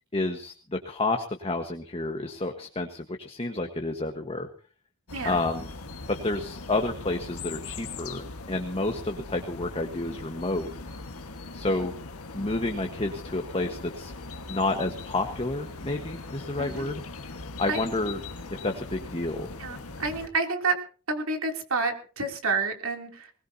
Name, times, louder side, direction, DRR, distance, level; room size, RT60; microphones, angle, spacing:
voice 1, 0.1-4.5 5.2-5.6 6.1-10.7 11.5-11.9 12.3-14.1 14.5-17.0 17.6-18.2 18.6-19.5, left 2 dB, 25° left, 4 dB, 1.4 m, -30 dB
sound 1, 5.1-20.3, left 3 dB, 75° left, 1.6 m, -40 dB
voice 2, 5.1-5.4 16.6-16.9 17.7-17.8 19.6-20.8 21.1-23.3, right 4 dB, 65° right, 4 dB, 3.2 m, -29 dB
21.0 x 19.5 x 2.9 m, 0.39 s
head